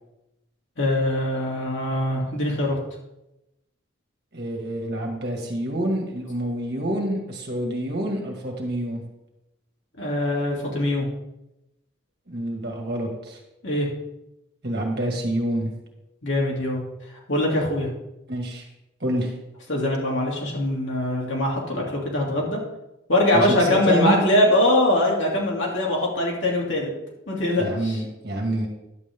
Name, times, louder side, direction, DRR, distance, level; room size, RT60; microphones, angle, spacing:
voice 1, 0.8-2.8 10.0-11.1 13.6-13.9 16.2-16.8 17.3-17.9 19.7-22.6 23.1-26.9 27.3-28.0, left 1 dB, 70° left, -3 dB, 2.6 m, -22 dB
voice 2, 4.3-9.0 12.3-13.4 14.6-15.7 18.3-18.7 19.0-19.3 23.3-24.2 27.6-28.7, right 1 dB, 50° right, 0 dB, 1.9 m, -27 dB
11.0 x 7.6 x 3.6 m, 0.91 s
head